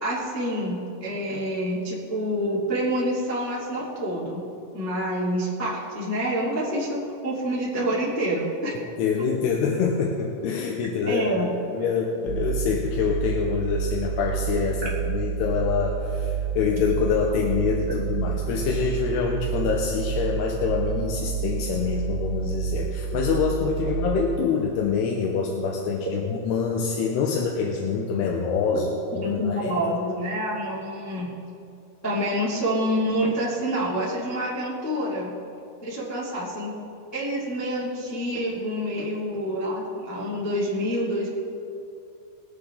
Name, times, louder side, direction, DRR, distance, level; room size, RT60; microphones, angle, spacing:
voice 1, 0.0-4.4 4.7-8.7 11.0-11.5 29.2-31.4 32.0-35.3 35.8-36.7 37.1-41.3, equal, 10° left, -7 dB, 0.8 m, -27 dB
voice 2, 9.0-28.9 29.2-29.7, left 6 dB, 80° left, 0 dB, 2.8 m, -25 dB
sound 1, 12.3-24.4, right 7 dB, 75° right, 3.0 m, -29 dB
22.0 x 8.1 x 3.8 m, 2.6 s
omnidirectional pair, 5.2 m